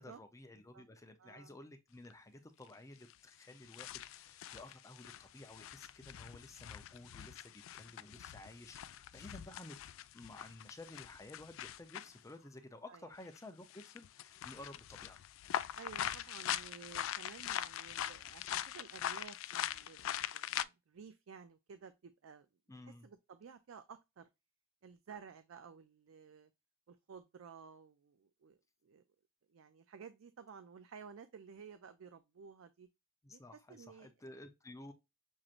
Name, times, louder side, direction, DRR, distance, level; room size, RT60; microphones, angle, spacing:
voice 1, 0.0-9.8 10.1-15.2 22.7-23.1 33.2-34.9, left 2 dB, 15° left, 0.6 m, -53 dB
voice 2, 1.2-1.5 12.9-13.1 15.7-22.5 23.0-24.3 24.8-26.5 26.9-29.0 29.5-32.9 33.3-33.4 33.7-34.1, right 6 dB, 85° right, 0.4 m, -54 dB
sound 1, 2.1-2.2 3.1-3.2 3.6-12.2 13.2-13.4 13.7-20.6, left 11 dB, 75° left, 0.3 m, -42 dB
6.3 x 3.0 x 2.4 m
head